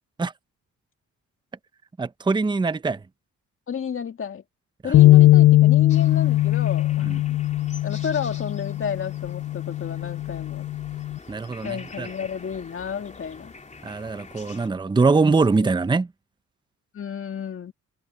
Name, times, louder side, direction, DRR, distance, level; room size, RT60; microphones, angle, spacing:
voice 1, 2.0-3.0 7.1-7.2 11.3-12.1 13.8-16.1, right 4 dB, 15° right, 0.7 m, -22 dB
voice 2, 3.7-4.4 4.8-7.4 7.8-10.7 11.6-13.5 15.3-15.4 16.9-17.7, left 7 dB, 45° left, 2.2 m, -32 dB
sound 1, 4.9-11.2, left 15 dB, 70° left, 0.8 m, -19 dB
sound 2, 5.9-14.7, left 3 dB, 25° left, 3.0 m, -45 dB
cardioid pair, 90°, 30 cm